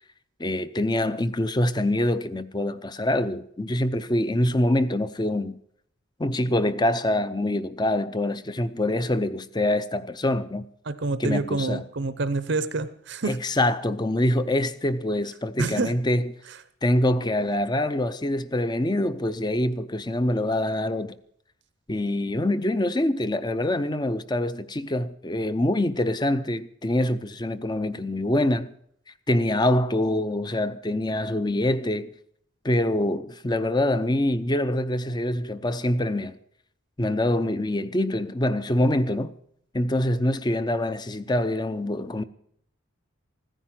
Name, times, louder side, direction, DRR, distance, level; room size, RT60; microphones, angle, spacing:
voice 1, 0.4-5.5 6.2-10.7 11.2-11.8 13.2-16.3 16.8-21.2 21.9-28.7 29.3-32.1 32.6-36.4 37.0-39.3 39.7-42.2, left 1 dB, 20° left, 0.6 m, -25 dB
voice 2, 10.9-13.4 15.6-15.9, right 3 dB, 55° right, 0.7 m, -27 dB
15.5 x 10.0 x 7.6 m
head